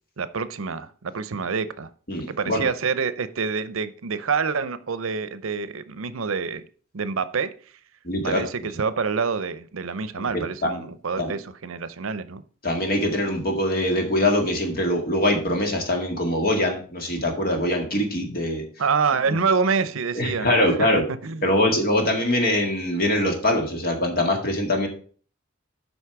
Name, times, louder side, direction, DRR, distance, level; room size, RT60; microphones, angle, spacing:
voice 1, 0.2-1.9 2.3-6.6 6.9-7.5 8.2-12.4 18.8-20.5 21.2-21.5, right 5 dB, 80° right, 15 dB, 0.6 m, -26 dB
voice 2, 2.1-2.7 8.0-8.4 10.2-10.8 11.2-11.3 12.6-18.6 20.1-21.1 21.4-24.9, left 1 dB, 45° left, 2 dB, 2.0 m, -23 dB
8.2 x 5.3 x 5.9 m, 0.43 s
head